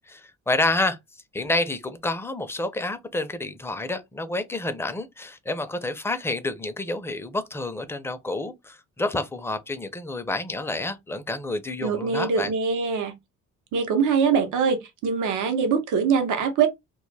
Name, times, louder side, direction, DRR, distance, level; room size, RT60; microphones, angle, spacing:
voice 1, 0.1-1.0 1.3-12.5, left 2 dB, 10° left, 0.4 m, -29 dB
voice 2, 11.8-13.1 13.7-16.7, right 6 dB, 80° right, 0.7 m, -23 dB
2.2 x 2.1 x 3.2 m
cardioid pair, 90°, 30 cm